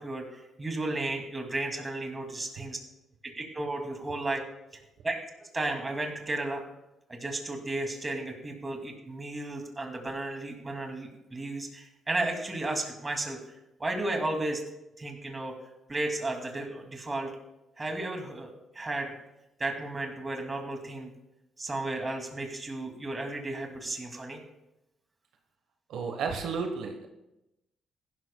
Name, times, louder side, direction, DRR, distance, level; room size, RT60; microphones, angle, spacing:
voice 1, 0.0-2.8 3.4-4.4 5.0-6.6 7.1-13.5 13.8-14.6 15.0-15.6 15.9-17.3 17.8-18.5 18.7-19.1 19.6-21.1 21.6-24.4, right 2 dB, 20° right, 2 dB, 2.5 m, -34 dB
voice 2, 25.9-27.1, right 5 dB, 75° right, 5 dB, 1.2 m, -32 dB
16.0 x 12.0 x 2.3 m, 0.92 s
cardioid pair, 90°, 0 cm